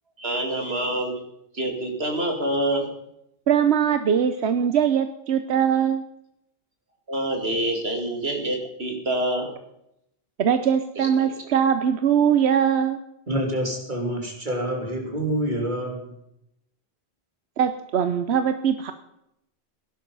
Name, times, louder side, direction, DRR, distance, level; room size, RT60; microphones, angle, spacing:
voice 1, 0.2-1.2 1.5-2.9 7.1-9.5 11.0-11.4, right 1 dB, 70° right, 2 dB, 2.9 m, -26 dB
voice 2, 3.5-6.0 10.4-13.0 17.6-18.9, right 8 dB, 90° right, 10 dB, 1.1 m, -21 dB
voice 3, 13.3-16.1, right 1 dB, 45° right, 1 dB, 3.5 m, -27 dB
16.5 x 11.5 x 5.4 m, 0.79 s
omnidirectional pair, 1.1 m